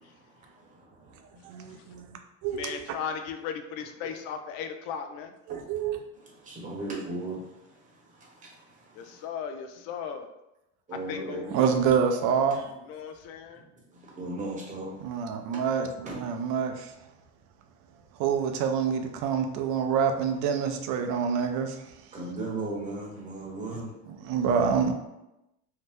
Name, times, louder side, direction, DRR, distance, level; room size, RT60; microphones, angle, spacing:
voice 1, 0.0-2.0 5.5-5.9 6.2-9.3 10.9-11.6 13.9-15.2 15.5-16.4 22.1-24.0, right 2 dB, 25° right, -3 dB, 0.9 m, -38 dB
voice 2, 1.4-2.8 5.5-6.0 11.5-12.7 15.0-16.9 18.2-21.9 24.3-24.9, right 6 dB, 60° right, 6 dB, 0.5 m, -27 dB
voice 3, 2.5-5.3 8.9-10.3 11.1-11.8 12.9-13.6, left 7 dB, 80° left, 6 dB, 0.5 m, -36 dB
2.8 x 2.0 x 3.4 m, 0.92 s
cardioid pair, 135°, 33 cm